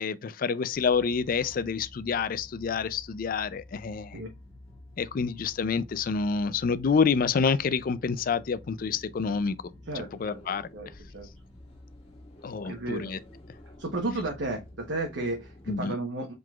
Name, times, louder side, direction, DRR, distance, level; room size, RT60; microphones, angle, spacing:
voice 1, 0.0-4.2 5.0-9.6 9.9-10.7 12.4-13.2 15.7-15.9, left 5 dB, 50° left, 0.4 m, -28 dB
sound 1, 0.7-15.8, left 1 dB, 35° left, 1.4 m, -50 dB
voice 2, 9.9-10.4 10.7-11.3 12.6-13.1 13.8-16.3, right 2 dB, 85° right, 1.0 m, -33 dB
4.7 x 3.8 x 2.3 m
head